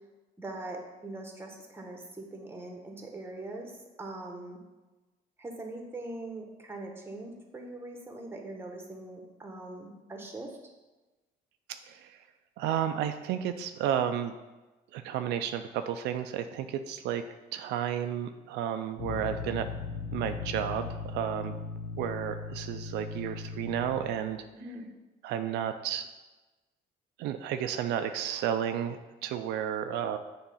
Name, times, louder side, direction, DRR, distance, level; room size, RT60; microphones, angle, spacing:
voice 1, 0.4-3.7 4.0-4.6 5.4-10.5 24.5-24.9, right 2 dB, 15° right, 2 dB, 1.1 m, -42 dB
voice 2, 11.9-12.2 12.6-14.3 14.9-17.2 17.5-19.7 20.1-21.6 22.0-24.4 25.2-26.1 27.2-30.2, right 9 dB, 85° right, 8 dB, 0.4 m, -32 dB
sound 1, 19.0-24.3, left 4 dB, 80° left, 0.7 m, -38 dB
7.2 x 3.2 x 5.5 m, 1.1 s
cardioid pair, 110°, 17 cm